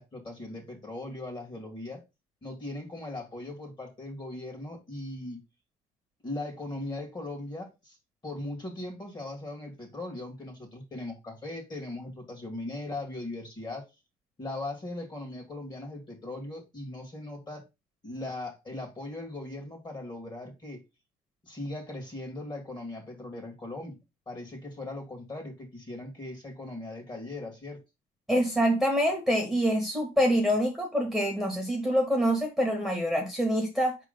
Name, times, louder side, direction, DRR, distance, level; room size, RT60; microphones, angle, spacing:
voice 1, 0.0-2.0 2.4-5.4 6.2-8.0 8.2-13.8 14.4-17.6 18.0-20.8 21.4-24.0 24.3-27.8, left 2 dB, 25° left, 2.3 m, -39 dB
voice 2, 28.3-34.0, equal, ahead, 1.7 m, -26 dB
4.9 x 3.8 x 5.3 m
cardioid pair, 110°, 17 cm